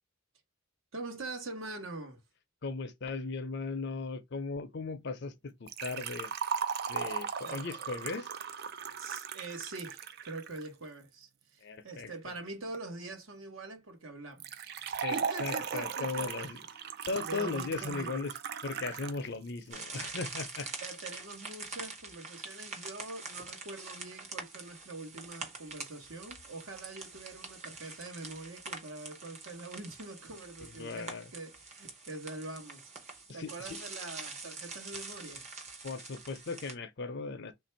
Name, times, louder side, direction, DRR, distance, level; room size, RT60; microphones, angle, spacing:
voice 1, 0.9-2.2 7.4-7.6 9.0-16.5 17.2-18.2 20.8-35.5, right 2 dB, 70° right, 1.1 m, -44 dB
voice 2, 2.6-6.3 6.9-8.3 11.6-12.1 15.0-16.6 17.1-18.3 18.6-20.7 30.8-31.3 33.3-33.8 35.8-37.5, left 4 dB, 55° left, 0.6 m, -37 dB
Liquid, 5.7-10.7 14.4-19.2 19.5-19.6 20.5-20.6, right 7 dB, 50° right, 0.4 m, -37 dB
sound 1, 19.7-36.7, right 3 dB, 30° right, 0.8 m, -45 dB
3.4 x 2.6 x 4.3 m
head